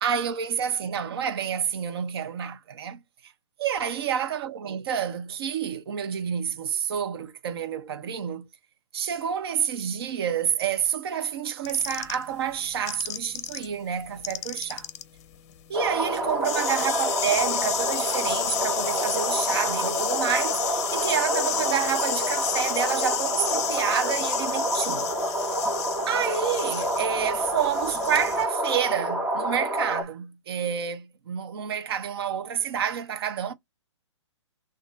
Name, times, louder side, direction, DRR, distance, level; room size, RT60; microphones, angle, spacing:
voice 1, 0.0-3.0 3.6-8.5 8.9-14.9 15.7-25.1 26.1-33.5, right 8 dB, 50° right, 0.8 m, -29 dB
sound 1, 11.6-13.7 14.0-28.4, left 11 dB, 30° left, 0.7 m, -31 dB
sound 2, 15.7-30.0, right 1 dB, 5° right, 0.5 m, -28 dB
6.3 x 2.6 x 2.4 m
hypercardioid pair, 160°, 16 cm